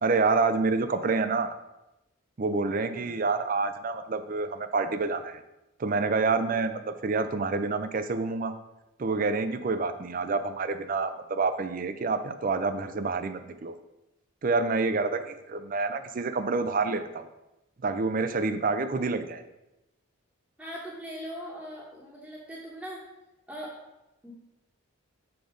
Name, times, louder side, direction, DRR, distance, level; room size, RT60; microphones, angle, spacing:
voice 1, 0.0-1.5 2.4-5.4 5.8-8.5 9.0-13.7 14.4-17.3 17.8-19.4, right 4 dB, 40° right, 10 dB, 0.4 m, -28 dB
voice 2, 20.6-23.0 23.5-23.8 24.2-24.3, equal, 5° right, -8 dB, 1.1 m, -40 dB
6.9 x 3.9 x 5.0 m, 0.95 s
head